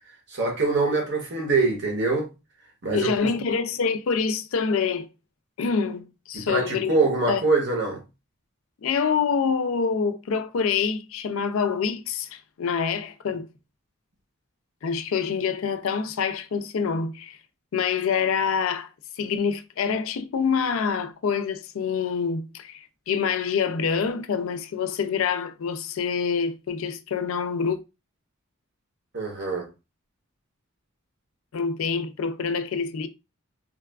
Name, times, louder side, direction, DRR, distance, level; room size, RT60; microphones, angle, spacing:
voice 1, 0.3-2.3 2.8-3.1 6.3-8.0 29.1-29.7, right 3 dB, 55° right, 0.9 m, -24 dB
voice 2, 2.9-5.1 5.6-7.0 7.3-7.4 8.8-13.5 14.8-17.4 17.7-18.9 19.2-27.8 31.5-33.1, left 6 dB, 75° left, 0.4 m, -26 dB
3.8 x 2.3 x 2.2 m
head